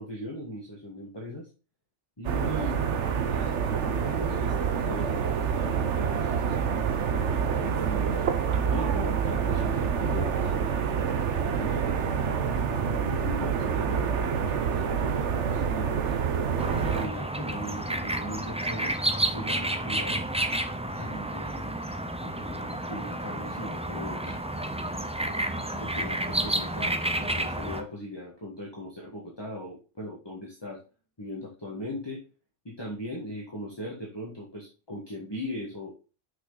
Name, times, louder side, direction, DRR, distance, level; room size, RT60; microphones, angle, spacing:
voice 1, 0.0-1.5 2.2-5.2 5.9-8.2 8.7-10.6 11.5-16.1 16.7-20.2 20.8-21.7 22.2-24.4 25.2-25.4 25.8-30.8 31.2-32.2 32.6-35.9, left 1 dB, 20° left, -3 dB, 1.6 m, -39 dB
sound 1, 2.2-17.1, right 7 dB, 75° right, 1.2 m, -27 dB
sound 2, 16.6-27.8, right 1 dB, 10° right, 0.4 m, -30 dB
6.2 x 5.8 x 3.9 m, 0.33 s
omnidirectional pair, 1.2 m